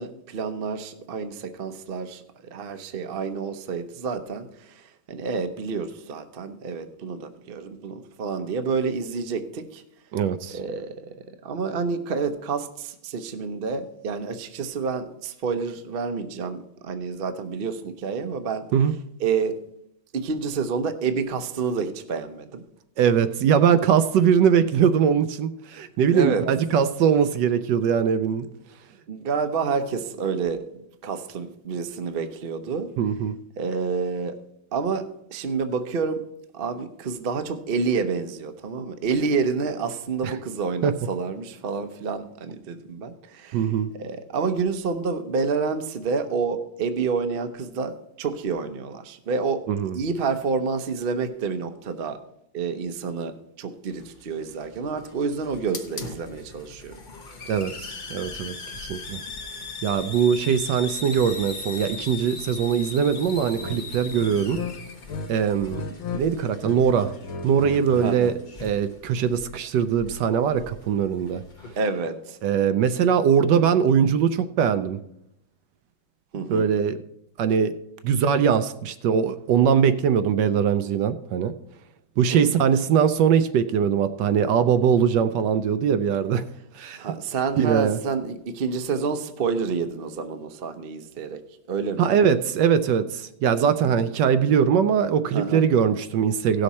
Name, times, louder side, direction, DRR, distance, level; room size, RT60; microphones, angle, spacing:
voice 1, 0.0-9.8 10.5-10.9 11.4-18.6 19.2-19.6 20.1-22.6 26.1-26.5 29.1-30.6 31.0-32.9 33.6-34.4 34.7-36.2 36.5-43.7 43.9-49.6 49.9-52.2 52.5-57.0 68.0-68.3 71.8-72.4 76.3-76.7 82.3-82.6 86.9-91.4 91.7-92.1 93.8-94.1 95.3-95.6, right 5 dB, 55° right, 8 dB, 0.6 m, -28 dB
voice 2, 10.1-10.6 18.7-18.9 23.0-28.5 33.0-33.3 40.2-40.4 40.8-40.9 43.5-43.9 49.7-50.0 57.5-59.2 59.8-64.6 65.3-65.8 66.1-67.1 67.4-68.3 68.6-71.4 72.4-75.0 76.3-77.0 77.4-77.7 78.0-81.5 82.2-86.4 86.7-87.0 87.6-88.0 92.0-96.6, right 7 dB, 75° right, 11 dB, 1.1 m, -21 dB
Hiss, 53.9-71.8, left 4 dB, 40° left, 0.7 m, -40 dB
sound 1, 63.6-63.8 64.2-65.3 65.6-66.2 66.5-68.4, left 4 dB, 75° left, 1.7 m, -34 dB
16.5 x 6.5 x 4.2 m, 0.78 s
omnidirectional pair, 2.2 m